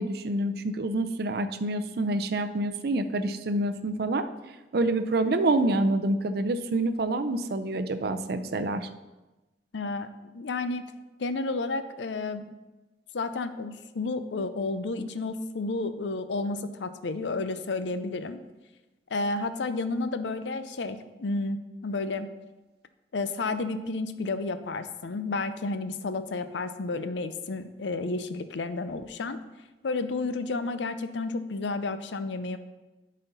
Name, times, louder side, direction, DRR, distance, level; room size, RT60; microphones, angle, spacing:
voice 1, 0.0-4.2 4.7-8.9, right 2 dB, 60° right, 9 dB, 0.5 m, -27 dB
voice 2, 9.7-10.9 11.2-12.5 13.1-18.4 19.1-21.6 21.8-22.3 23.1-29.4 29.8-32.6, left 3 dB, 80° left, 11 dB, 0.5 m, -31 dB
11.5 x 4.3 x 4.0 m, 1.1 s
head